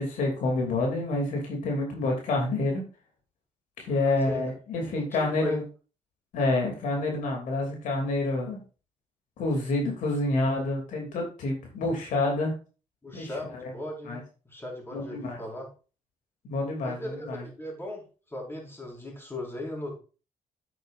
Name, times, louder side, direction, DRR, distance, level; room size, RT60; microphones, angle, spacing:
voice 1, 0.0-2.8 3.8-5.6 6.3-8.6 9.4-12.5 13.1-13.3 13.6-13.7 14.1-14.2 14.9-15.4 16.4-17.4, left 2 dB, 80° left, 1 dB, 2.8 m, -28 dB
voice 2, 3.9-4.5 5.0-5.6 13.0-15.7 16.8-18.0 18.3-20.0, left 1 dB, 15° left, -1 dB, 5.0 m, -38 dB
9.2 x 8.7 x 2.6 m, 0.35 s
cardioid pair, 80°, 13 cm